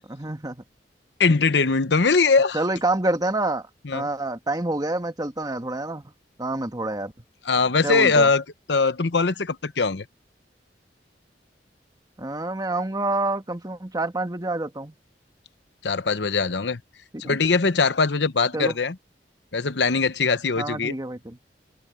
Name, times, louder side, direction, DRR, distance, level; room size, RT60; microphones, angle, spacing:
voice 1, 0.1-0.6 2.5-3.7 3.9-6.0 6.4-7.1 7.8-8.3 12.2-14.9 17.2-17.4 18.5-18.8 20.6-21.4, right 2 dB, 20° right, 1.8 m, -27 dB
voice 2, 1.2-2.6 3.9-4.1 7.5-8.4 8.7-10.0 15.8-16.8 17.2-19.0 19.5-20.9, left 4 dB, 75° left, 0.9 m, -21 dB
head